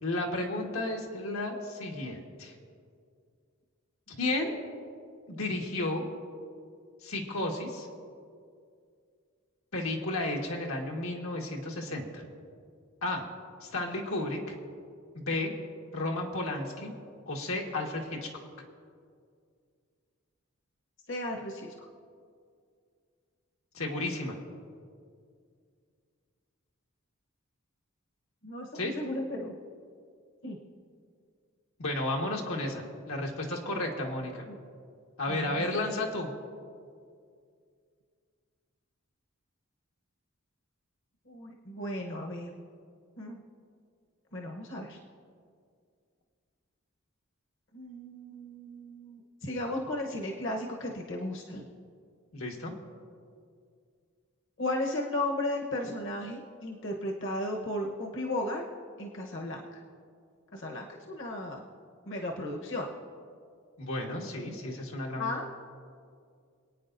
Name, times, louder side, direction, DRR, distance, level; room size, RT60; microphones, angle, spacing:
voice 1, 0.0-2.5 4.1-4.6 5.3-6.0 7.0-7.9 9.7-12.2 13.0-13.2 13.6-14.5 15.2-15.5 15.9-16.9 17.3-18.3 23.7-24.4 28.7-28.9 31.8-34.4 35.2-36.3 52.3-52.7 63.8-65.4, left 2 dB, 90° left, 0 dB, 1.7 m, -33 dB
voice 2, 21.1-21.7 28.4-29.5 30.4-30.6 34.4-34.6 35.3-36.0 41.3-42.5 43.2-43.4 44.3-45.0 47.7-51.6 54.6-58.7 59.0-59.8 60.5-61.6 62.1-62.9 65.2-65.5, left 1 dB, 60° left, 1 dB, 1.1 m, -35 dB
27.0 x 9.1 x 2.6 m, 2.2 s
head